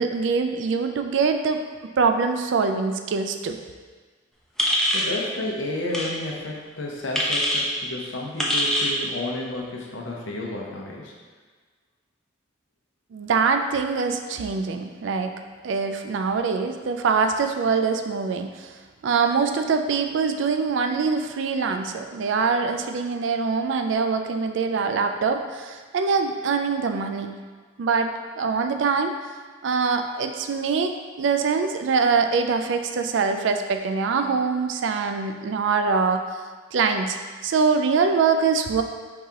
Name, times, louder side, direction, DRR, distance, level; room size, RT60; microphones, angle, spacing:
voice 1, 0.0-1.6 2.0-3.6 13.1-15.3 15.6-18.8 19.0-27.3 27.8-29.1 29.6-36.2 36.7-37.2 37.4-38.8, right 5 dB, 70° right, 6 dB, 0.3 m, -23 dB
sound 1, 4.6-5.1 5.9-6.1 7.1-7.6 8.4-9.0, equal, 5° left, 0.5 m, -23 dB
voice 2, 4.9-11.1, left 2 dB, 75° left, -2 dB, 0.8 m, -31 dB
4.7 x 3.6 x 2.8 m, 1.5 s
head